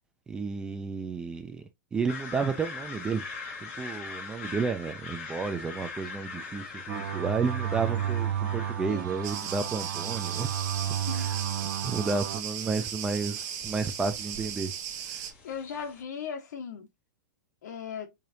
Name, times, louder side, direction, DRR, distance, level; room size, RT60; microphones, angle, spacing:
voice 1, 0.3-3.3 3.6-10.6 11.1-11.4 11.8-14.7 15.0-15.3, right 4 dB, 10° right, 0.4 m, -32 dB
sound 1, 2.1-16.0, left 4 dB, 45° left, 1.9 m, -43 dB
sound 2, 6.9-12.4, right 10 dB, 85° right, 0.5 m, -32 dB
Cricket, 9.2-15.3, right 9 dB, 30° right, 1.0 m, -36 dB
voice 2, 15.4-16.9 17.6-18.1, left 7 dB, 65° left, 1.5 m, -37 dB
5.0 x 3.7 x 2.7 m
supercardioid pair, 175°, 10 cm